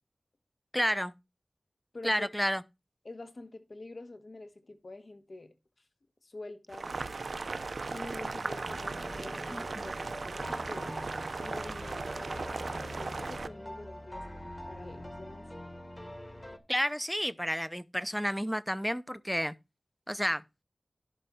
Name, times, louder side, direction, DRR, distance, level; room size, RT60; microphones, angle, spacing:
voice 1, 0.7-1.1 2.0-2.6 9.5-9.8 16.7-19.5 20.1-20.4, equal, ahead, 0.6 m, -31 dB
voice 2, 1.9-2.3 3.0-5.5 6.2-7.0 7.9-10.9 11.4-15.5, left 2 dB, 60° left, 1.7 m, -47 dB
Boiling, 6.7-13.5, right 3 dB, 90° right, 0.6 m, -37 dB
sound 1, 8.6-16.6, equal, 20° left, 1.6 m, -44 dB
11.0 x 4.6 x 5.5 m
wide cardioid pair, 70°, 0 cm